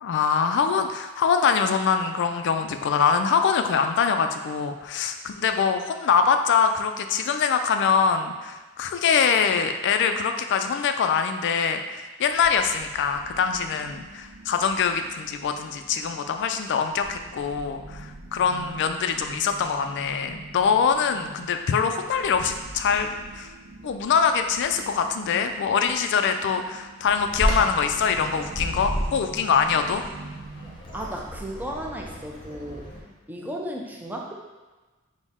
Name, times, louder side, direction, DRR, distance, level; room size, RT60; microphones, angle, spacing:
voice 1, 0.0-23.1 23.4-23.5 23.8-30.0, left 6 dB, 55° left, 7 dB, 0.3 m, -23 dB
sound 1, 12.3-30.8, right 2 dB, 85° right, 0.7 m, -44 dB
Bird vocalization bird call bird song, 27.3-33.0, equal, 25° left, 0.8 m, -32 dB
voice 2, 30.9-32.9 33.3-34.3, right 1 dB, 10° right, -1 dB, 0.5 m, -34 dB
6.1 x 2.1 x 3.5 m, 1.2 s
head